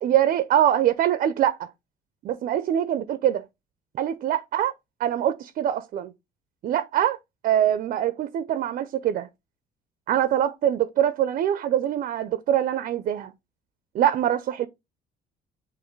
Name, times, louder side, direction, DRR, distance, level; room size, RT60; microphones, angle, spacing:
voice 1, 0.0-1.7 2.2-3.5 4.0-4.7 5.0-6.1 6.6-7.2 7.4-9.3 10.1-13.3 13.9-14.7, right 11 dB, 55° right, 0.5 m, -23 dB
6.4 x 2.5 x 3.1 m
cardioid pair, 110°, 17 cm